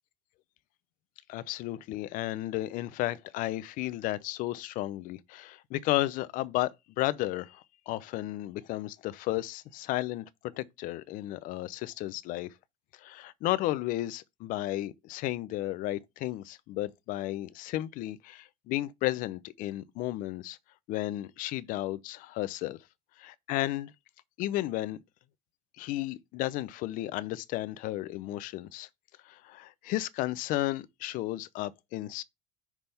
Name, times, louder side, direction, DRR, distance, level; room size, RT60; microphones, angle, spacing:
voice 1, 1.3-10.3 10.5-12.5 13.0-20.6 20.9-22.8 23.2-23.9 24.4-25.0 25.8-28.9 29.2-32.2, left 16 dB, 60° left, 0.5 m, -33 dB
6.0 x 3.4 x 5.5 m
supercardioid pair, 125°, 16 cm